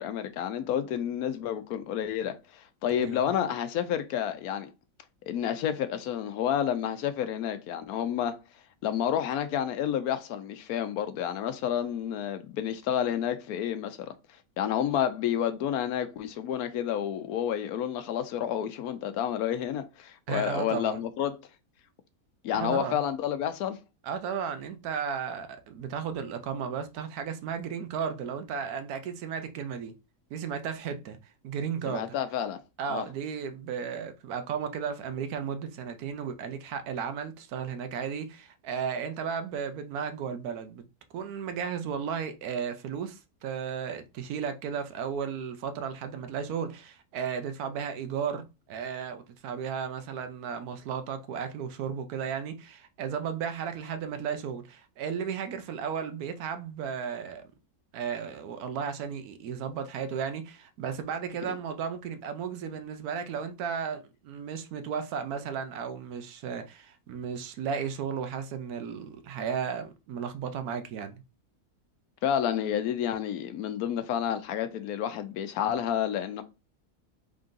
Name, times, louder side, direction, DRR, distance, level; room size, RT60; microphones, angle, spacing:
voice 1, 0.0-4.7 5.3-8.4 8.8-14.2 14.6-21.4 22.4-23.8 31.9-32.6 32.9-33.0 61.5-61.6 72.2-76.4, left 9 dB, 80° left, 1.1 m, -30 dB
voice 2, 20.3-21.0 22.5-23.0 24.0-29.9 30.3-31.2 31.4-32.1 32.8-40.9 41.1-57.5 57.9-71.2, right 7 dB, 80° right, 1.1 m, -34 dB
3.8 x 3.6 x 2.5 m
omnidirectional pair, 1.6 m